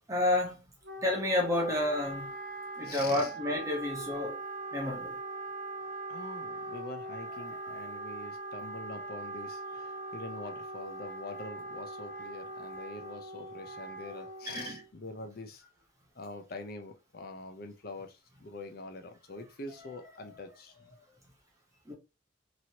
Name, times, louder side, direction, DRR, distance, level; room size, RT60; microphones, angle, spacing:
voice 1, 0.1-0.7 1.0-2.3 2.8-4.4 4.7-5.2 7.6-7.8 14.5-14.8 20.2-20.3 21.9-22.0, left 1 dB, 15° right, 0.8 m, -30 dB
Wind instrument woodwind instrument, 0.8-14.9, right 2 dB, 50° right, 0.5 m, -41 dB
voice 2, 2.8-3.3 6.1-15.6 16.1-21.1, left 3 dB, 50° left, 0.6 m, -45 dB
3.0 x 2.7 x 2.8 m
head